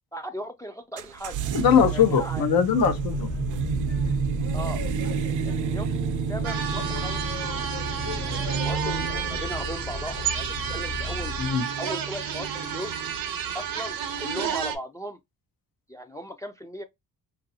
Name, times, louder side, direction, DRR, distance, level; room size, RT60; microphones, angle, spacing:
voice 1, 0.1-1.4 1.9-2.4 4.5-4.8 5.4-6.0 6.3-7.8 8.5-11.3 11.8-12.9 13.5-15.2 15.9-16.8, equal, 10° left, 0.3 m, -37 dB
sound 1, 1.0-13.1, right 7 dB, 60° right, 0.5 m, -31 dB
voice 2, 1.5-3.3 11.4-11.6, left 7 dB, 85° left, 0.7 m, -21 dB
Boat Water vehicle, 2.7-11.6, left 2 dB, 50° left, 1.2 m, -34 dB
sound 2, 6.4-14.8, right 8 dB, 90° right, 0.7 m, -31 dB
3.1 x 2.5 x 2.7 m
cardioid pair, 95°, 34 cm